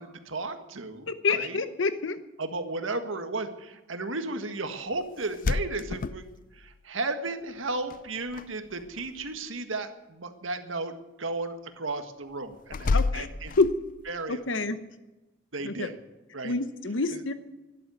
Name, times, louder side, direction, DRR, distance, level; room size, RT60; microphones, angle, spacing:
voice 1, 0.0-1.6 2.4-6.3 6.5-10.9 11.2-13.6 14.1-14.7 15.5-16.0 16.3-16.5 17.1-17.2, right 3 dB, 85° right, 7 dB, 1.7 m, -34 dB
voice 2, 1.1-2.2 12.9-13.3 13.6-13.8 14.3-14.8 15.6-15.9 16.4-17.3, left 3 dB, 70° left, 11 dB, 0.9 m, -27 dB
sound 1, 5.2-6.8 7.9-8.5 8.7-9.2 12.7-14.1, left 3 dB, 45° left, 0.4 m, -30 dB
12.5 x 11.5 x 9.5 m, 1.1 s
head